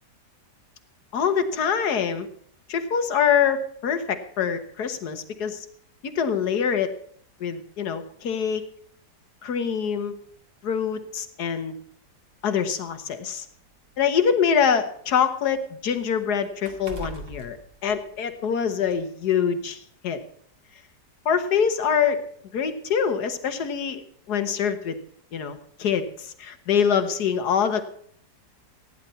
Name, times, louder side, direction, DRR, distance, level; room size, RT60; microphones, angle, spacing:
voice 1, 1.1-2.3 2.7-5.7 6.1-6.9 7.4-8.7 9.4-10.1 10.6-11.7 12.4-13.4 14.0-17.6 17.8-19.8 20.0-20.2 21.2-22.2 22.5-24.0 24.3-25.0 25.3-27.8, left 7 dB, 70° left, 10 dB, 1.7 m, -24 dB
sound 1, 9.8-10.0 11.1-11.2 11.6-11.7 12.7-14.7 15.0-18.5 18.9-19.0, right 1 dB, 65° right, 2.8 m, -43 dB
15.5 x 10.0 x 5.7 m, 0.62 s
omnidirectional pair, 1.8 m